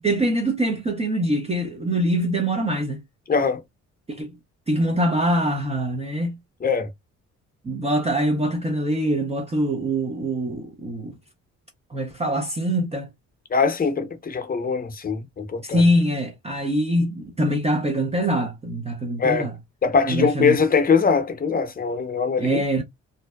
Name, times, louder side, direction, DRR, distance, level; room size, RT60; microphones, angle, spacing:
voice 1, 0.0-3.0 4.1-4.4 4.7-6.4 7.6-11.2 11.9-13.1 15.6-19.5 20.0-20.6 22.4-22.8, right 1 dB, 20° right, 0.5 m, -23 dB
voice 2, 3.3-3.6 6.6-6.9 13.5-15.8 19.2-19.5 19.8-22.6, left 5 dB, 30° left, 0.7 m, -22 dB
2.6 x 2.1 x 2.2 m
cardioid pair, 90°, 30 cm